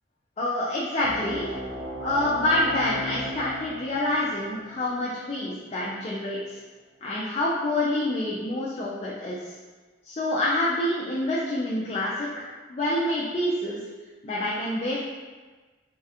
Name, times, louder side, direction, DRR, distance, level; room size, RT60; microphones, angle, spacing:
voice 1, 0.4-1.5 2.0-6.6 7.0-9.5 10.0-13.8 14.2-15.0, left 1 dB, 35° left, -6 dB, 0.3 m, -27 dB
sound 1, 1.0-6.1, left 1 dB, 75° right, 0.5 m, -36 dB
3.1 x 2.8 x 2.4 m, 1.3 s
head